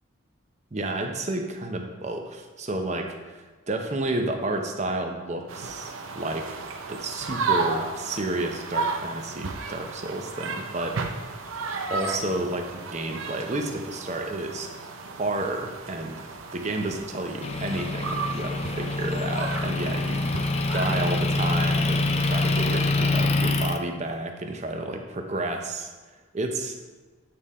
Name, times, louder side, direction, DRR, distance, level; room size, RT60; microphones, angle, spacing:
voice 1, 0.7-3.1 3.7-6.6 6.9-11.3 11.9-14.7 15.2-16.2 16.5-20.2 20.7-25.9 26.3-26.8, right 2 dB, 35° right, 4 dB, 0.6 m, -31 dB
sound 1, 5.5-22.9, right 4 dB, 75° right, 0.6 m, -34 dB
Motor vehicle (road) / Engine, 17.4-23.8, left 2 dB, 30° left, 0.3 m, -25 dB
8.6 x 3.7 x 4.2 m, 1.3 s
head